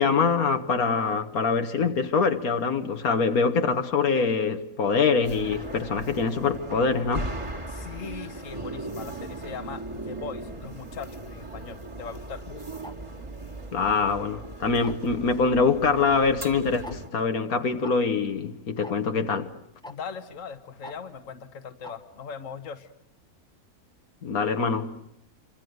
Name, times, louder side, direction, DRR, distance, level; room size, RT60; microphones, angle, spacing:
voice 1, 0.0-7.3 13.7-19.5 24.2-25.0, left 5 dB, 80° left, 1.8 m, -24 dB
sound 1, 5.2-17.1, right 2 dB, 20° right, 2.3 m, -38 dB
voice 2, 7.7-12.4 19.9-22.9, left 6 dB, 60° left, 1.6 m, -40 dB
Tick-tock, 12.8-12.9 13.8-14.1 14.8-15.1 15.8-15.9 16.2-16.3 16.8-17.0 17.8-17.9 18.8-18.9 19.8-19.9 20.8-20.9 21.8-21.9, left 1 dB, 5° left, 1.2 m, -41 dB
28.0 x 25.0 x 8.0 m
omnidirectional pair, 1.5 m